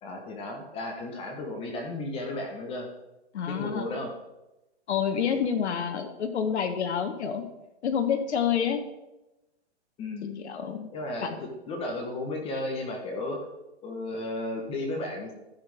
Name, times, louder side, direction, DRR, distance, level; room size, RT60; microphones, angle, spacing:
voice 1, 0.0-2.9 3.5-4.1 10.0-10.4 10.9-13.4 13.8-15.3, left 2 dB, 15° left, 2 dB, 1.1 m, -34 dB
voice 2, 3.3-3.9 4.9-7.4 7.8-8.8 10.4-10.9 11.2-11.4, left 7 dB, 70° left, 6 dB, 1.4 m, -28 dB
14.0 x 6.1 x 3.5 m, 0.97 s
hypercardioid pair, 150°, 35 cm